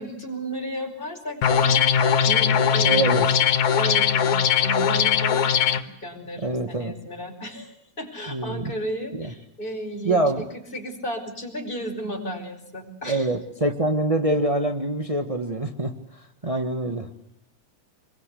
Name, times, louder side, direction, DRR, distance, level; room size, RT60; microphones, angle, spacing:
voice 1, 0.0-3.2 3.7-13.3, right 1 dB, 15° left, 1 dB, 5.2 m, -34 dB
sound 1, 1.4-5.8, left 7 dB, 75° left, 2.7 m, -20 dB
voice 2, 2.8-3.3 6.4-6.9 8.3-8.7 9.2-9.3 10.0-10.4 13.1-17.1, right 2 dB, 35° right, 3 dB, 0.5 m, -25 dB
26.5 x 22.5 x 8.4 m, 0.74 s
omnidirectional pair, 3.4 m